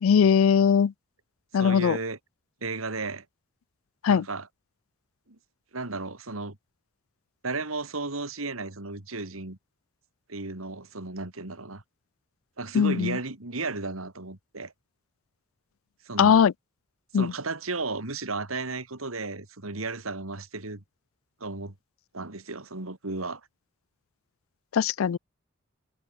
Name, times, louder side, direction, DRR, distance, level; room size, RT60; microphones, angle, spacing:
voice 1, 0.0-0.9 1.5-2.0 4.0-4.2 12.7-13.2 16.2-16.5 17.1-17.3 24.7-25.2, left 7 dB, 75° left, 0.4 m, -20 dB
voice 2, 1.5-2.2 2.6-3.2 4.1-4.5 5.3-5.4 5.7-6.6 7.4-9.6 10.3-11.8 12.6-14.7 16.0-16.4 17.1-20.8 21.4-21.7 22.1-23.4, right 3 dB, 80° right, 2.8 m, -34 dB
head